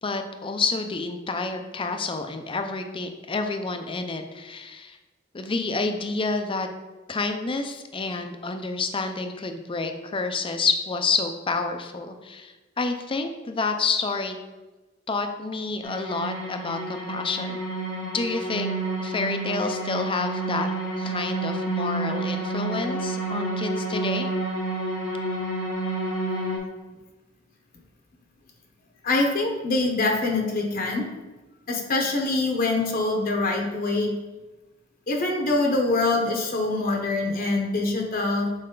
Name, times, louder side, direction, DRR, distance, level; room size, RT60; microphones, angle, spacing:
voice 1, 0.0-5.0 5.3-6.7 7.1-14.4 15.1-17.6 18.0-18.7 19.0-20.7 21.0-24.3, left 4 dB, 25° left, 6 dB, 0.5 m, -29 dB
sound 1, 15.8-26.6, right 2 dB, 90° left, 1.8 m, -29 dB
voice 2, 29.0-31.1 31.7-34.2 35.1-38.5, left 2 dB, 50° left, 1 dB, 0.9 m, -24 dB
6.5 x 4.3 x 3.8 m, 1.1 s
head